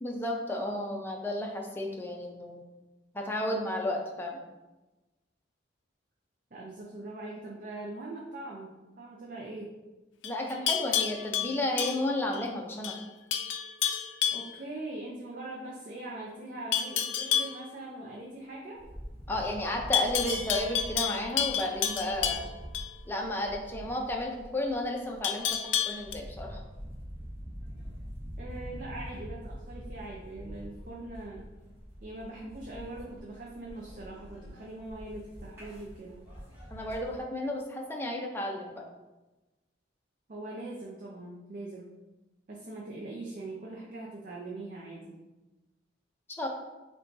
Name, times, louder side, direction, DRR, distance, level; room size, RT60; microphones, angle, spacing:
voice 1, 0.0-2.6 3.1-4.4 10.2-13.0 19.3-22.5 23.1-26.6 36.7-38.8 46.4-46.5, left 1 dB, 10° left, 0 dB, 0.5 m, -33 dB
voice 2, 6.5-9.7 14.3-18.9 28.4-31.4 32.0-36.2 40.3-41.9 42.5-45.2, right 2 dB, 45° right, -3 dB, 0.5 m, -42 dB
Livestock farm animals working animals, 10.2-12.5 12.8-13.1 13.3-14.6 16.7-17.6 19.9-22.9 25.2-26.1, left 9 dB, 75° left, 0.4 m, -30 dB
sound 1, 18.7-37.2, equal, 10° right, 1.0 m, -44 dB
6.7 x 2.3 x 2.6 m, 1.1 s
head